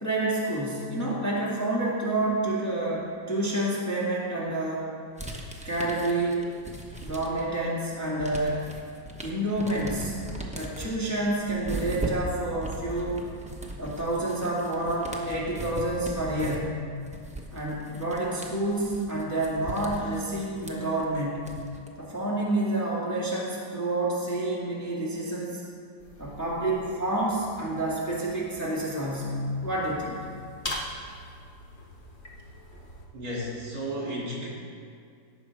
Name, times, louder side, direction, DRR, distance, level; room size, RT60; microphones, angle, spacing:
voice 1, 0.0-4.9 5.6-6.4 7.0-8.6 9.2-10.2 10.5-13.2 13.8-16.8 17.5-21.5 22.0-25.6 26.2-30.2, right 1 dB, 10° left, -6 dB, 1.8 m, -28 dB
sound 1, 5.2-7.6 7.9-21.9, right 1 dB, 10° right, 0.5 m, -38 dB
sound 2, 26.0-33.1, left 1 dB, 30° left, 1.3 m, -42 dB
voice 2, 33.1-34.5, equal, 60° right, -5 dB, 3.4 m, -33 dB
17.0 x 6.3 x 4.8 m, 2.2 s
omnidirectional pair, 2.0 m